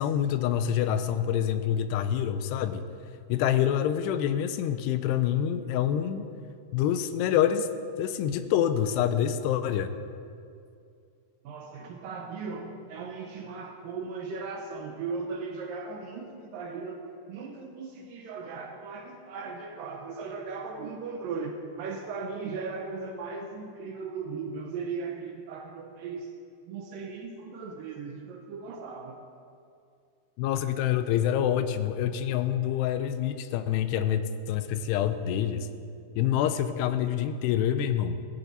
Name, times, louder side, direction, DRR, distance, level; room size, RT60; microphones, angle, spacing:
voice 1, 0.0-2.8 3.3-6.3 6.7-7.7 8.0-9.9 30.4-35.7 36.2-38.2, left 10 dB, 85° left, 10 dB, 2.8 m, -26 dB
voice 2, 11.4-26.3 26.7-29.2, right 4 dB, 75° right, 3 dB, 2.2 m, -37 dB
16.5 x 15.5 x 4.1 m, 2.4 s
omnidirectional pair, 4.8 m